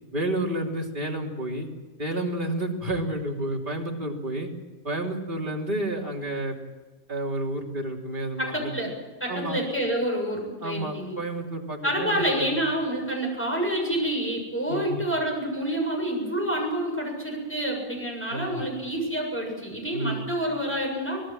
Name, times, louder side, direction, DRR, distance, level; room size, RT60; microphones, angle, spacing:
voice 1, 0.1-1.7 2.0-4.5 4.8-6.6 7.1-8.7 9.3-9.6 10.6-12.6 14.7-15.0 18.3-18.6 19.9-20.2, right 1 dB, 30° right, 0 dB, 3.3 m, -30 dB
voice 2, 8.4-8.9 9.2-11.2 11.8-21.2, right 1 dB, 5° left, -1 dB, 7.5 m, -28 dB
25.0 x 18.5 x 7.7 m, 1.3 s
omnidirectional pair, 1.8 m